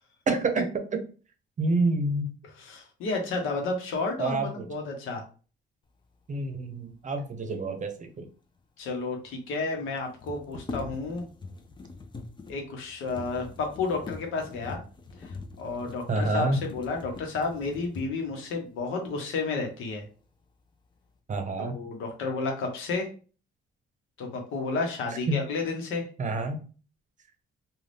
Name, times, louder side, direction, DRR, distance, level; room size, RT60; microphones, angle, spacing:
voice 1, 0.3-0.6 1.6-2.3 4.2-4.7 6.3-8.3 16.1-16.6 21.3-21.8 25.3-25.4 26.2-26.6, right 2 dB, 40° right, 6 dB, 0.7 m, -27 dB
voice 2, 2.5-5.2 8.8-11.3 12.5-14.8 15.2-20.1 21.6-23.1 24.2-26.1, left 3 dB, 90° left, 2 dB, 0.9 m, -31 dB
sound 1, 8.6-8.7 8.8-8.9 10.0-18.4 19.0-19.2 19.6-20.2 20.6-21.1, left 3 dB, 25° left, 0.5 m, -43 dB
2.5 x 2.3 x 3.3 m, 0.37 s
cardioid pair, 90°, 20 cm